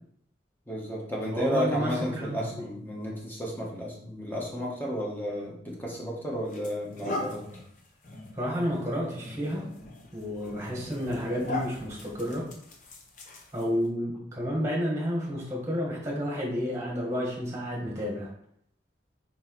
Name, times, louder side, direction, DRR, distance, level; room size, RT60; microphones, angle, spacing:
voice 1, 0.7-7.5, equal, 10° left, -3 dB, 1.3 m, -33 dB
voice 2, 1.3-2.6 8.4-9.7 10.1-12.4 13.5-18.3, equal, 15° right, -3 dB, 1.5 m, -31 dB
sound 1, 5.7-5.9 6.5-13.9, left 2 dB, 45° left, 1.0 m, -40 dB
4.6 x 4.4 x 4.6 m, 0.69 s
head